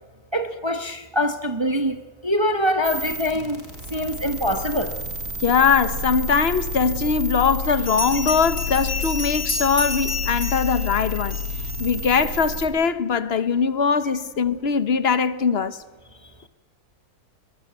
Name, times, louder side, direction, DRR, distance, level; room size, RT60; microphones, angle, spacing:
voice 1, 0.3-2.0 2.2-3.6 3.9-4.9, equal, 20° right, 1.1 m, -24 dB
sound 1, 2.8-12.7, left 1 dB, 50° right, 4.3 m, -30 dB
voice 2, 5.4-11.4 11.8-15.8, left 6 dB, 45° left, 1.1 m, -21 dB
Bell, 7.9-11.7, left 4 dB, 70° left, 6.2 m, -31 dB
22.0 x 21.5 x 8.2 m
omnidirectional pair, 1.7 m